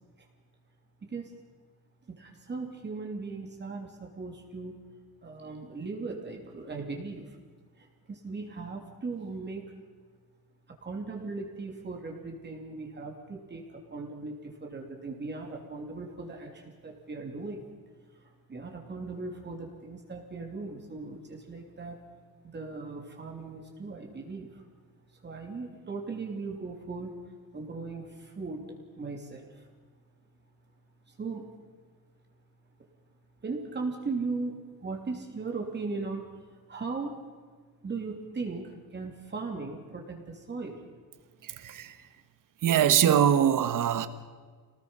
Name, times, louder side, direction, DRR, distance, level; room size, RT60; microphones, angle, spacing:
voice 1, 1.0-1.3 2.1-4.7 5.2-7.4 7.8-9.7 10.7-17.6 18.2-22.0 22.5-24.6 25.2-27.1 27.5-29.7 31.1-31.5 33.4-37.2 37.8-40.8 41.8-41.9, right 3 dB, 30° right, 3.0 m, -38 dB
voice 2, 41.4-41.9 42.6-44.1, right 9 dB, 60° right, 1.4 m, -23 dB
27.0 x 19.5 x 5.7 m
cardioid pair, 150°, 36 cm